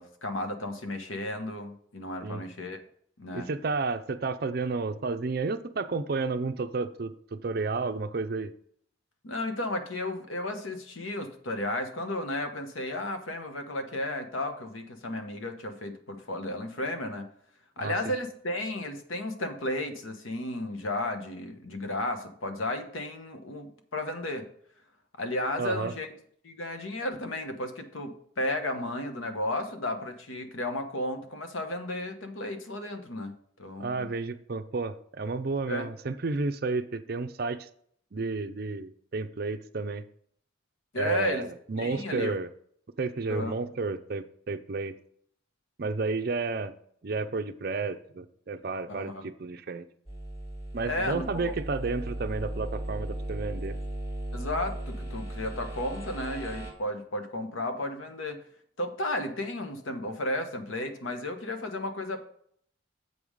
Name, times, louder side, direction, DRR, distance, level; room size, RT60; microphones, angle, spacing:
voice 1, 0.0-2.8 3.2-3.5 9.2-17.3 17.8-24.5 25.2-26.1 26.4-34.1 35.7-35.9 40.9-41.5 41.8-42.3 43.3-43.5 48.9-49.3 50.8-51.5 54.3-58.4 58.8-62.2, left 1 dB, 85° left, 7 dB, 1.1 m, -33 dB
voice 2, 3.3-8.5 17.8-17.9 25.6-25.9 33.8-37.7 38.1-40.0 41.0-42.5 43.0-45.0 45.8-46.7 47.0-49.8 50.7-53.8, right 3 dB, 50° right, 10 dB, 0.5 m, -31 dB
sound 1, 50.1-56.7, right 1 dB, 30° left, 2.0 m, -36 dB
7.9 x 5.5 x 4.9 m, 0.63 s
head